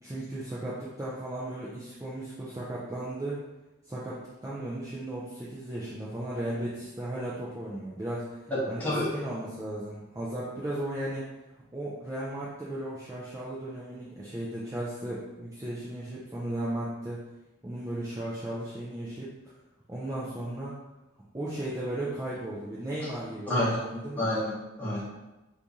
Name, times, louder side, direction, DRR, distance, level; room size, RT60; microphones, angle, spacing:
voice 1, 0.0-3.4 3.9-8.4 8.7-11.3 11.7-17.2 17.6-19.3 19.9-20.7 21.3-24.2, right 1 dB, 15° right, -8 dB, 0.4 m, -35 dB
voice 2, 8.5-9.1 23.5-23.8 24.1-25.1, left 1 dB, 10° left, -11 dB, 1.3 m, -29 dB
3.0 x 2.6 x 3.5 m, 1.0 s
head